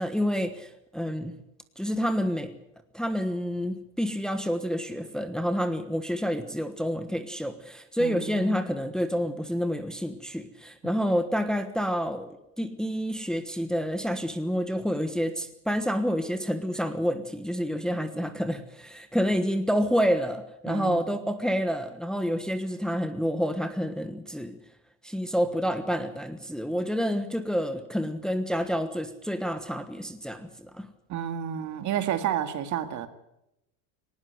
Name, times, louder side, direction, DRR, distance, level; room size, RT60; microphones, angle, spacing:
voice 1, 0.0-1.4 1.8-2.5 2.9-24.6 25.0-30.9, equal, ahead, 8 dB, 1.3 m, -28 dB
voice 2, 8.0-8.7 10.8-11.0 17.9-18.0 20.7-21.0 31.1-33.1, right 10 dB, 45° right, 9 dB, 2.1 m, -31 dB
19.0 x 18.0 x 8.0 m, 0.86 s
cardioid pair, 135°, 40 cm